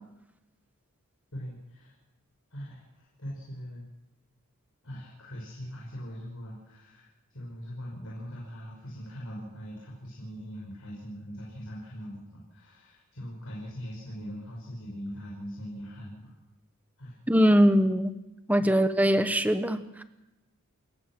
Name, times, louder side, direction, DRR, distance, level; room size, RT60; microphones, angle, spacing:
voice 1, 1.3-1.9 2.5-3.8 4.8-16.3 17.0-17.2 18.6-18.7, equal, 70° left, -3 dB, 5.7 m, -41 dB
voice 2, 17.3-18.2 18.5-20.0, equal, 5° right, 10 dB, 1.0 m, -22 dB
29.5 x 15.0 x 6.0 m, 0.92 s
head